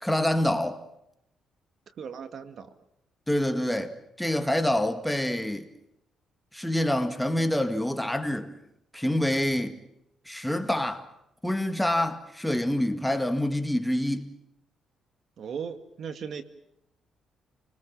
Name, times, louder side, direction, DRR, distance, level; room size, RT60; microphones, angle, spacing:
voice 1, 0.0-0.8 3.3-5.7 6.5-8.5 8.9-9.8 10.3-11.1 11.4-14.2, left 1 dB, 5° left, 2.0 m, -26 dB
voice 2, 2.0-2.7 15.4-16.4, right 7 dB, 60° right, 2.0 m, -37 dB
29.5 x 19.5 x 7.3 m
cardioid pair, 90°, 0 cm